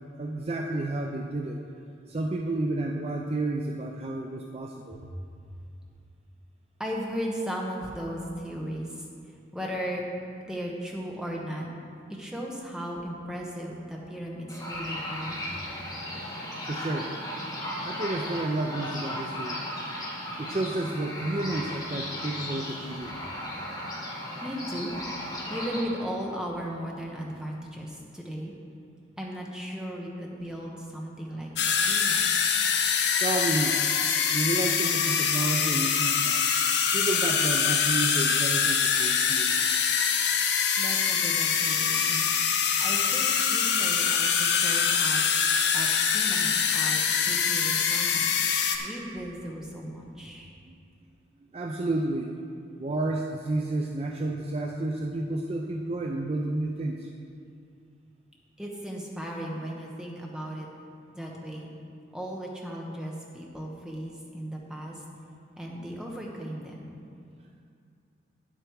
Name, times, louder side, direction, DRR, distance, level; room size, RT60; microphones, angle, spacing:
voice 1, 0.2-1.6 2.1-5.0 16.7-17.1 17.8-19.6 20.4-23.2 33.2-33.8 34.3-36.4 36.9-39.5 50.7-50.8 51.5-52.3 52.8-57.1, right 2 dB, 30° right, 1 dB, 0.4 m, -31 dB
voice 2, 6.8-9.1 9.5-10.0 10.4-11.7 12.1-15.4 24.4-25.0 25.5-28.5 29.2-32.3 40.8-42.3 42.8-45.2 45.7-50.5 58.6-60.7 61.1-61.7 62.1-65.0 65.6-66.9, equal, 5° right, -2 dB, 1.0 m, -36 dB
sound 1, 14.5-25.8, left 1 dB, 20° left, 1.5 m, -36 dB
sound 2, 31.6-48.8, left 7 dB, 65° left, 0.7 m, -24 dB
8.9 x 8.0 x 4.6 m, 2.4 s
head